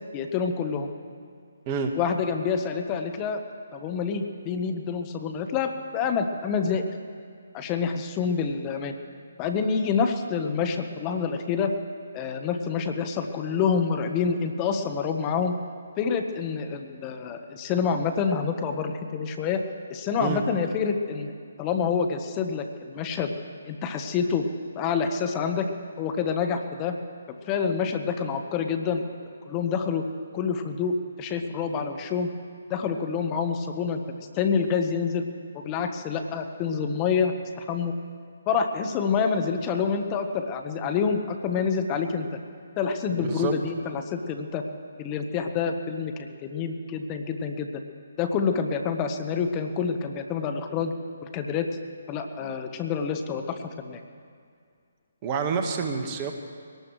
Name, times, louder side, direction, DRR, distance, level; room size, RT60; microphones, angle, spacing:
voice 1, 0.1-0.9 2.0-3.4 3.7-6.8 7.5-8.9 9.4-11.7 12.1-15.6 16.0-19.6 19.9-21.3 21.6-23.3 23.6-24.4 24.8-25.7 26.0-27.0 27.5-29.0 29.4-30.0 30.3-32.3 32.7-34.0 34.3-35.2 35.5-37.9 38.5-42.3 42.8-44.6 45.0-47.7 48.2-50.9 51.2-51.7 52.1-54.0, left 6 dB, 25° left, 5 dB, 1.1 m, -27 dB
voice 2, 43.2-43.5 55.2-56.3, right 6 dB, 30° right, 4 dB, 1.5 m, -28 dB
23.5 x 18.5 x 3.2 m, 2.1 s
figure-of-eight pair, 145°, 0 cm